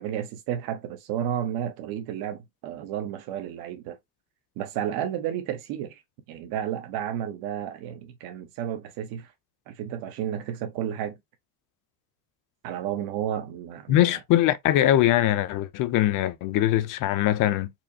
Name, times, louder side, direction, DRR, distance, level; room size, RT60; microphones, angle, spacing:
voice 1, 0.0-4.0 4.6-6.0 6.3-9.3 9.7-11.2 12.6-14.2, right 10 dB, 80° right, 1.0 m, -32 dB
voice 2, 13.9-17.7, left 13 dB, 60° left, 0.6 m, -22 dB
4.4 x 2.7 x 2.7 m
cardioid pair, 155°, 36 cm